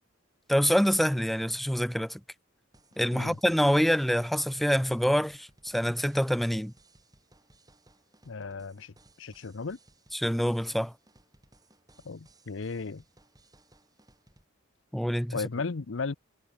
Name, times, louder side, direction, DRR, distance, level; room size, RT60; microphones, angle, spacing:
voice 1, 0.5-2.2 3.0-6.7 10.1-10.9 14.9-15.3, equal, ahead, 0.3 m, -26 dB
sound 1, 2.7-14.5, right 2 dB, 20° right, 4.9 m, -62 dB
voice 2, 8.2-9.8 12.0-13.0 15.3-16.1, left 4 dB, 70° left, 0.7 m, -35 dB
head